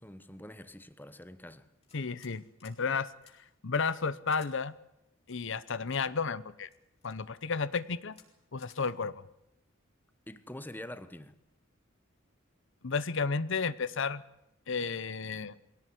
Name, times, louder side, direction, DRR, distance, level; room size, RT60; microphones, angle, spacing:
voice 1, 0.0-1.7 10.3-11.4, left 1 dB, 10° left, 1.3 m, -45 dB
sound 1, 1.8-2.3 2.6-2.8 3.2-3.3 4.3-4.5 5.3-6.0 6.7-7.2 7.7-7.8 8.1-8.3 8.6-8.8, left 6 dB, 30° left, 5.3 m, -58 dB
voice 2, 1.9-3.1 3.6-4.7 5.3-6.7 7.0-8.1 8.5-9.1 12.8-14.2 14.7-15.5, left 5 dB, 65° left, 0.9 m, -32 dB
22.5 x 17.5 x 9.8 m
head